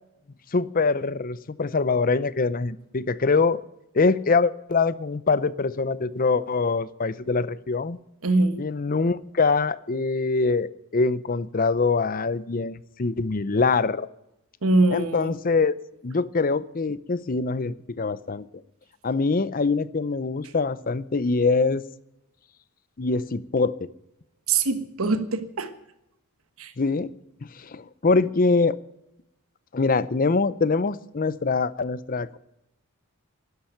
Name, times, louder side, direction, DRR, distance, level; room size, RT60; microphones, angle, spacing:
voice 1, 0.5-3.6 3.9-8.0 8.6-14.1 14.9-15.7 16.0-18.6 19.0-21.8 23.0-23.9 26.8-27.1 27.5-28.8 29.7-32.4, left 4 dB, 40° left, 17 dB, 0.6 m, -24 dB
voice 2, 8.2-8.6 14.6-15.3 24.5-25.7 26.6-26.7, right 3 dB, 70° right, 11 dB, 1.4 m, -23 dB
12.5 x 11.5 x 9.0 m, 0.84 s
head